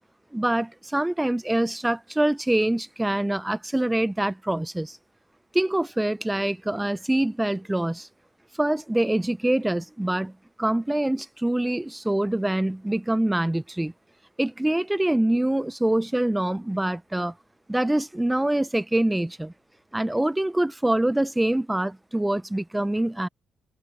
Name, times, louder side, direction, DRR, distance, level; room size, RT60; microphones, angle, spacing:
voice 1, 0.3-5.0 5.5-8.1 8.6-10.3 10.6-13.9 14.4-17.3 17.7-19.5 19.9-23.3, right 1 dB, 10° right, 0.4 m, -25 dB
cardioid pair, 90°, 0 cm